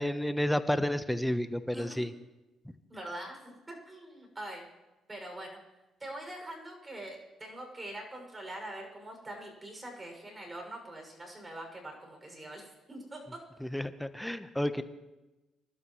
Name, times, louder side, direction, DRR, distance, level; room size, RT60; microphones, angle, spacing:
voice 1, 0.0-2.1 13.6-14.8, left 1 dB, 5° left, 11 dB, 1.1 m, -31 dB
voice 2, 1.7-2.0 2.9-4.7 5.1-5.6 6.0-13.4, right 1 dB, 25° right, 2 dB, 6.8 m, -44 dB
26.0 x 12.5 x 3.3 m, 1.1 s
supercardioid pair, 65°, 0 cm